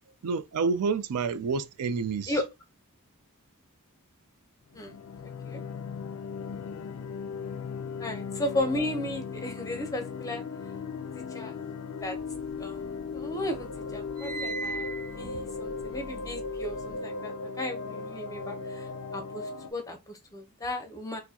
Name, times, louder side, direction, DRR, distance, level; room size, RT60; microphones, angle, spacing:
voice 1, 0.2-2.3, right 5 dB, 90° right, 0.4 m, -28 dB
sound 1, 4.7-19.7, left 5 dB, 65° left, 0.4 m, -37 dB
voice 2, 8.0-10.4 11.3-11.5 12.0-12.2 12.6-12.8 13.1-14.9 15.2-18.9 19.1-19.4 19.7-21.2, left 1 dB, 15° left, 0.7 m, -34 dB
sound 2, 12.1-13.2 13.5-16.9, right 3 dB, 20° right, 1.3 m, -39 dB
4.4 x 2.1 x 2.8 m
head